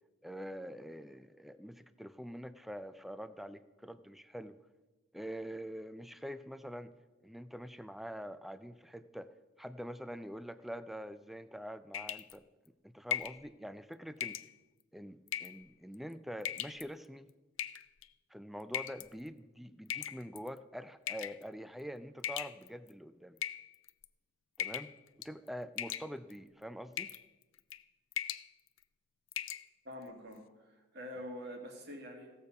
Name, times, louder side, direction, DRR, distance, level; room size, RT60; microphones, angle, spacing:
voice 1, 0.2-4.6 5.1-6.9 7.2-9.3 9.6-12.4 12.8-14.4 14.9-17.3 18.3-23.4 24.6-24.9 25.2-27.1, equal, ahead, 13 dB, 0.3 m, -45 dB
sound 1, 11.9-12.4 13.1-13.4 14.2-14.5 15.3-15.6 16.4-16.8 17.6-18.1 18.7-19.1 19.9-20.5 21.1-21.4 22.2-22.9 23.4-24.1 24.6-25.0 25.2-25.5 25.8-26.4 27.0-27.2 27.6-27.8 28.1-28.5 28.8-28.9 29.3-29.6, left 10 dB, 75° left, 0.5 m, -38 dB
voice 2, 29.9-32.3, equal, 55° right, 3 dB, 1.9 m, -46 dB
16.5 x 7.0 x 5.2 m, 1.2 s
head